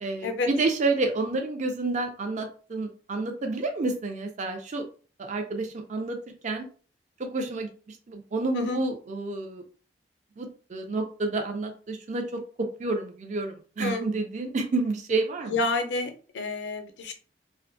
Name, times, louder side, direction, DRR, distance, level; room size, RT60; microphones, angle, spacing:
voice 1, 0.0-4.8 5.2-6.2 6.4-6.7 7.2-9.6 10.4-15.6, right 3 dB, 40° right, 4 dB, 0.4 m, -29 dB
voice 2, 15.5-17.1, left 3 dB, 75° left, 7 dB, 0.5 m, -29 dB
2.5 x 2.2 x 2.5 m, 0.39 s
head